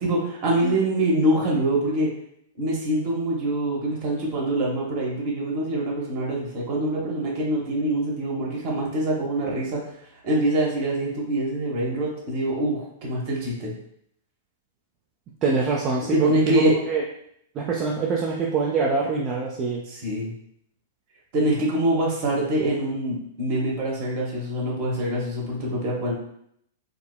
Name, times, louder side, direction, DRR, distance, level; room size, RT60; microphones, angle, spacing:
voice 1, 0.0-2.1 2.6-9.8 10.2-13.7 16.0-16.7 19.9-20.3 21.3-26.1, right 1 dB, 50° right, -3 dB, 1.1 m, -25 dB
voice 2, 15.4-17.0 17.5-19.8, right 4 dB, 35° right, -2 dB, 0.4 m, -24 dB
3.6 x 2.1 x 2.2 m, 0.70 s
figure-of-eight pair, 105°, 0 cm